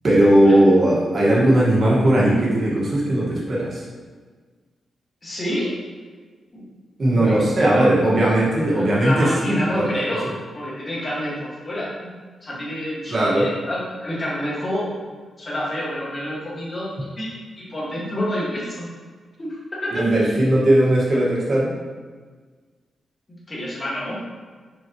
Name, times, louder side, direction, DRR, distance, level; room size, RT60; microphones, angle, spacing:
voice 1, 0.0-3.8 7.0-10.1 13.1-13.5 20.0-21.7, right 1 dB, 35° right, -5 dB, 1.6 m, -18 dB
voice 2, 5.2-5.7 6.5-6.6 7.1-7.4 7.6-8.0 8.7-12.1 12.4-14.9 15.4-17.3 17.6-18.9 19.4-19.9 23.5-24.2, left 1 dB, 25° left, -7 dB, 1.8 m, -28 dB
6.0 x 5.8 x 3.0 m, 1.5 s
wide cardioid pair, 175°, 0 cm